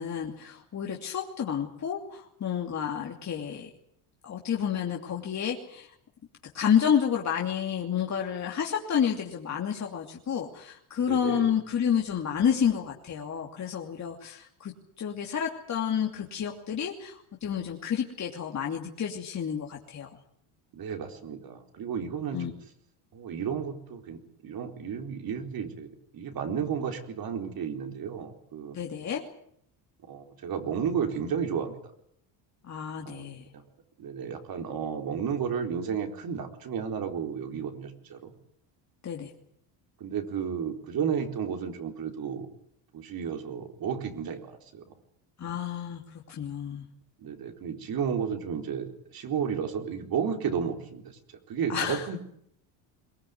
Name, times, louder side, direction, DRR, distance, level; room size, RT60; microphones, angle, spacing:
voice 1, 0.0-3.7 4.2-5.9 6.5-20.1 22.3-22.5 28.7-29.2 32.6-33.4 39.0-39.3 45.4-46.8 51.7-52.1, left 8 dB, 35° left, 0 dB, 2.9 m, -30 dB
voice 2, 11.1-11.5 20.7-22.5 23.1-28.8 30.1-31.7 33.1-33.6 34.0-38.3 40.0-42.5 42.9-44.9 47.2-52.2, right 7 dB, 50° right, 5 dB, 4.2 m, -33 dB
23.0 x 18.0 x 9.6 m, 0.69 s
cardioid pair, 115°, 47 cm